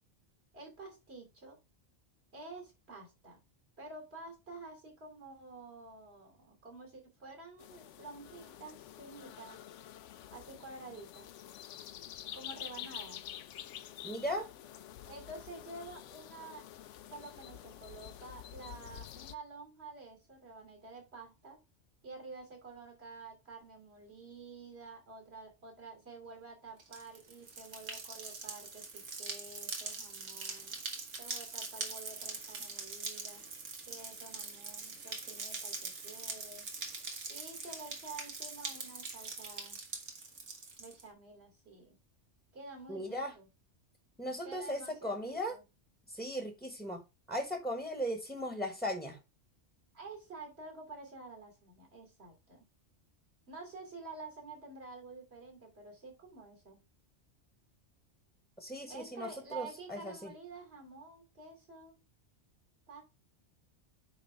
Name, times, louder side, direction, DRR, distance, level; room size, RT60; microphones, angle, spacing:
voice 1, 0.5-1.6 2.3-3.4 3.8-9.6 10.3-11.3 12.3-13.2 15.1-16.6 17.1-21.6 22.0-30.7 31.2-33.4 33.9-36.7 37.3-39.8 40.8-41.9 42.5-43.5 44.4-45.6 49.9-52.6 53.5-56.8 58.9-62.0 62.9-63.0, right 3 dB, 60° right, 2 dB, 3.3 m, -49 dB
sound 1, 7.6-19.3, left 11 dB, 80° left, 0.9 m, -48 dB
voice 2, 14.0-14.5 42.9-43.3 44.2-45.6 46.1-47.0 47.3-49.2 58.6-60.3, equal, ahead, 5 dB, 1.1 m, -37 dB
sound 2, 26.8-41.0, right 4 dB, 80° right, 1.8 m, -43 dB
9.0 x 3.7 x 4.5 m, 0.26 s
omnidirectional pair, 1.2 m